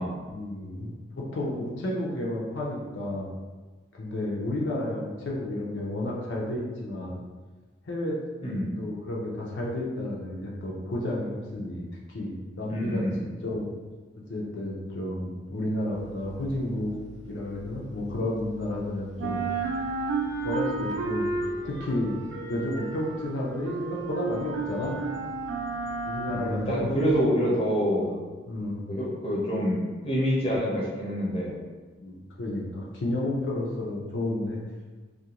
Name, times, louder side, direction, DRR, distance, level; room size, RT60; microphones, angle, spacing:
voice 1, 0.3-3.3 4.0-7.2 7.9-8.2 8.8-11.8 12.1-13.0 13.4-13.7 14.3-16.9 17.3-19.4 20.4-21.3 21.6-22.2 22.5-25.0 26.0-26.9 28.0-28.2 28.5-28.8 32.0-34.6, left 1 dB, 80° left, -3 dB, 0.5 m, -31 dB
voice 2, 8.4-8.8 12.7-13.2 26.3-28.1 28.9-31.6, equal, 30° left, -5 dB, 0.6 m, -27 dB
sound 1, 15.9-18.8 19.1-27.2, right 3 dB, 75° right, 0.3 m, -33 dB
2.4 x 2.2 x 2.8 m, 1.3 s
head